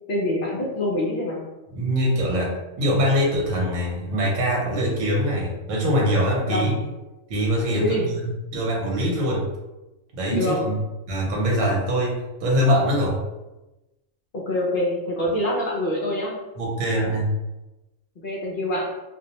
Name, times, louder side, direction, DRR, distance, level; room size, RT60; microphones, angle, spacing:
voice 1, 0.1-1.4 6.5-6.7 7.7-8.1 10.3-10.6 14.3-16.4 18.2-18.8, left 1 dB, 60° left, -3 dB, 0.5 m, -25 dB
voice 2, 1.7-6.9 7.3-8.2 8.5-9.5 10.2-10.7 11.1-13.2 16.6-17.3, equal, 75° right, -4 dB, 1.1 m, -23 dB
2.6 x 2.0 x 2.7 m, 1.0 s
omnidirectional pair, 1.4 m